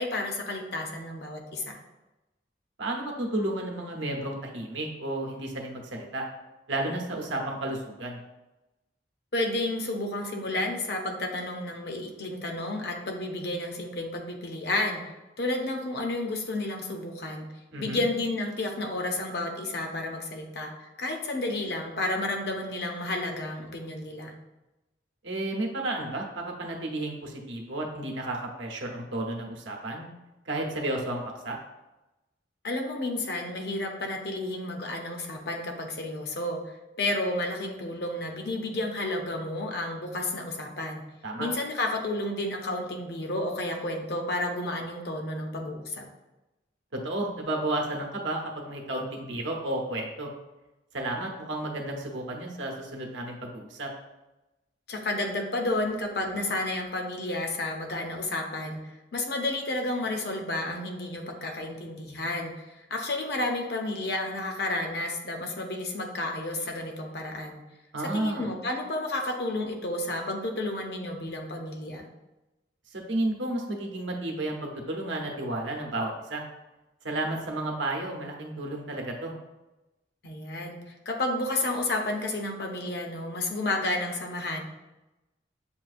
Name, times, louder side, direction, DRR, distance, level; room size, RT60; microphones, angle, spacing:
voice 1, 0.0-1.8 9.3-15.0 15.4-17.5 17.8-24.3 32.6-36.6 37.0-41.0 41.4-46.1 54.9-58.8 59.1-62.5 62.9-67.6 68.1-72.1 80.2-84.6, left 2 dB, 60° left, 2 dB, 0.6 m, -31 dB
voice 2, 2.8-6.3 6.7-8.2 17.7-18.0 25.2-30.1 30.5-31.6 41.2-41.5 47.0-50.3 50.9-53.9 67.9-68.5 72.9-76.4 77.0-79.3, right 1 dB, 85° right, 1 dB, 0.8 m, -32 dB
7.0 x 2.4 x 2.5 m, 1.0 s
head